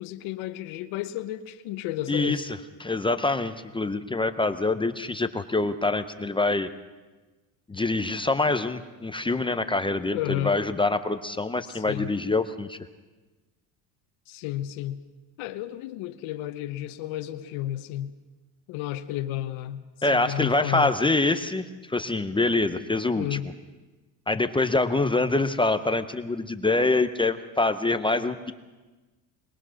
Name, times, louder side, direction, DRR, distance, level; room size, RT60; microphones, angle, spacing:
voice 1, 0.0-2.4 10.1-10.6 11.7-12.1 14.3-15.0 15.4-18.1 18.7-20.9 23.2-23.5, left 13 dB, 75° left, 7 dB, 1.1 m, -32 dB
voice 2, 2.1-2.4 2.8-6.7 7.7-12.8 20.0-23.4 24.3-28.5, left 2 dB, 10° left, 9 dB, 0.6 m, -25 dB
22.0 x 20.5 x 6.3 m, 1.2 s
cardioid pair, 135°, 48 cm